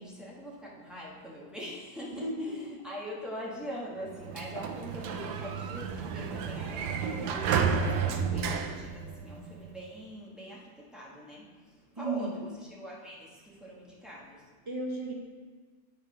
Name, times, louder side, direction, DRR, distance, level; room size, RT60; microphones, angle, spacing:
voice 1, 0.0-14.6, equal, ahead, -6 dB, 1.3 m, -43 dB
voice 2, 2.1-2.6 12.0-12.4 14.6-15.1, right 2 dB, 20° right, -2 dB, 1.1 m, -34 dB
Sliding door, 4.1-9.7, right 6 dB, 80° right, 1.2 m, -31 dB
8.1 x 4.8 x 5.3 m, 1.4 s
omnidirectional pair, 1.7 m